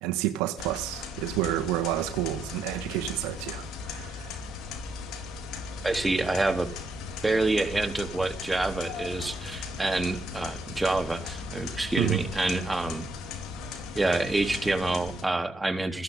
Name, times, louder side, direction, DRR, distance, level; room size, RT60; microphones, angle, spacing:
voice 1, 0.0-4.4 12.0-12.2, right 15 dB, 75° right, 1.9 m, -30 dB
sound 1, 0.6-15.2, left 5 dB, 65° left, 4.6 m, -38 dB
voice 2, 5.8-6.7 7.2-13.1 13.9-16.0, right 2 dB, 15° right, 3.5 m, -27 dB
29.0 x 11.5 x 3.9 m
hypercardioid pair, 65°, 0 cm